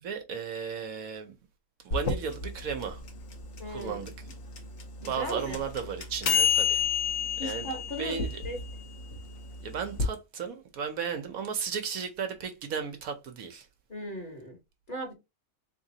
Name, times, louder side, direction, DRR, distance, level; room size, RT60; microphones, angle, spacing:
voice 1, 0.0-1.4 1.8-3.0 3.7-4.1 5.0-6.8 7.4-7.7 8.0-8.4 9.6-13.7, right 6 dB, 70° right, 1.1 m, -35 dB
sound 1, 1.9-10.1, left 7 dB, 55° left, 1.0 m, -30 dB
voice 2, 3.6-4.1 5.0-5.6 7.4-8.6 13.9-14.6 14.9-15.1, equal, 35° left, 1.2 m, -37 dB
3.7 x 3.2 x 2.7 m
omnidirectional pair, 1.6 m